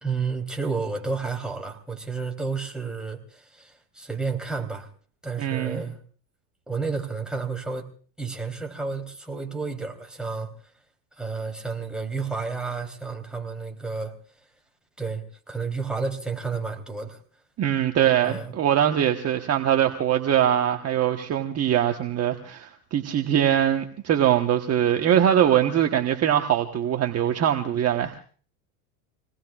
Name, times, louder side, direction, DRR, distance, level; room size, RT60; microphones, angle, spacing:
voice 1, 0.0-4.9 5.2-6.0 6.7-7.9 8.2-10.5 11.2-14.1 15.0-17.2 18.2-18.6, right 4 dB, ahead, 2 dB, 3.5 m, -31 dB
voice 2, 5.4-5.8 17.6-28.2, right 10 dB, 35° right, 4 dB, 1.3 m, -22 dB
27.5 x 19.0 x 2.5 m, 0.42 s
supercardioid pair, 110°, 45 cm